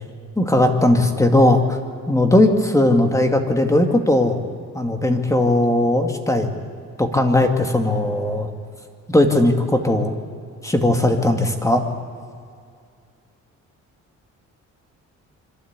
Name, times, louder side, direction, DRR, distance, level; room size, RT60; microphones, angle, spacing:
voice 1, 0.4-1.8 2.1-4.4 4.7-6.5 7.0-8.5 9.1-10.1 10.6-11.8, left 1 dB, 10° left, 4 dB, 2.3 m, -18 dB
25.0 x 12.5 x 8.3 m, 2.3 s
cardioid pair, 90°, 30 cm